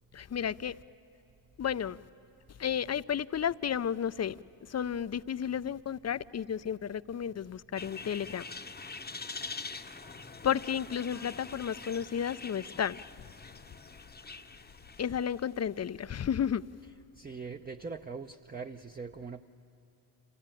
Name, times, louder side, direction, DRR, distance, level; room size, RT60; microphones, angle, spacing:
voice 1, 0.1-0.8 1.6-2.0 2.5-8.4 10.4-13.3 15.0-16.6, left 8 dB, 35° left, 0.5 m, -32 dB
sound 1, 7.8-15.6, left 4 dB, 20° left, 0.8 m, -45 dB
voice 2, 17.2-19.4, right 4 dB, 20° right, 0.7 m, -41 dB
26.5 x 16.0 x 9.0 m
supercardioid pair, 45°, 46 cm